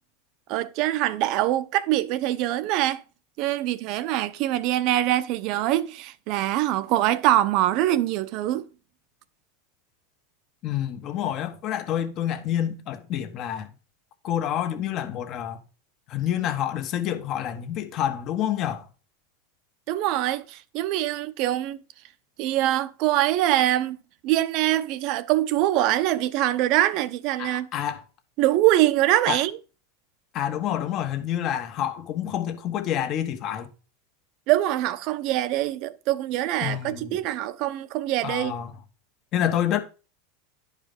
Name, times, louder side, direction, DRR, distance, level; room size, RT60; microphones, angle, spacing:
voice 1, 0.5-3.0 3.4-8.7 19.9-21.8 22.4-24.0 24.2-27.7 28.4-29.6 34.5-38.5, right 14 dB, 50° right, 0.8 m, -24 dB
voice 2, 10.6-13.7 14.2-15.6 16.1-18.8 27.4-28.0 29.3-29.4 30.3-33.7 36.6-37.2 38.2-38.7 39.3-39.8, left 10 dB, 40° left, 1.5 m, -28 dB
11.5 x 5.0 x 5.3 m
supercardioid pair, 135°, 0 cm